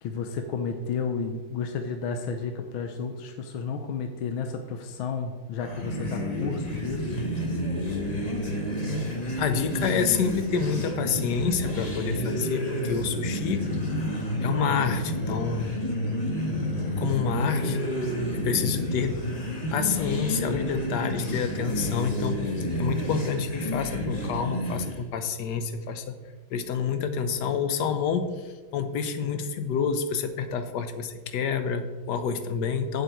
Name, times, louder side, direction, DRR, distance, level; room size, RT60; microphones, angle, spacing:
voice 1, 0.0-7.2 7.5-7.7, left 5 dB, 85° left, 6 dB, 1.5 m, -32 dB
sound 1, 5.6-25.1, equal, 30° left, 0.8 m, -30 dB
voice 2, 9.4-13.7 14.4-15.7 17.0-17.8 18.3-19.2 19.7-22.4 22.8-26.2 26.5-28.3 28.7-33.0, left 6 dB, 65° left, 9 dB, 1.2 m, -28 dB
8.2 x 7.9 x 4.5 m, 1.3 s
omnidirectional pair, 2.2 m